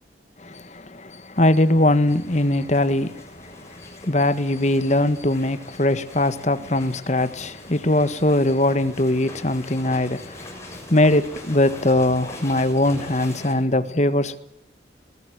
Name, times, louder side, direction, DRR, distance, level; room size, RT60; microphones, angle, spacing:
voice 1, 0.4-14.4, left 1 dB, 40° left, 1.6 m, -21 dB
sound 1, 1.4-13.5, left 1 dB, 15° left, 6.6 m, -42 dB
21.0 x 18.5 x 9.4 m
head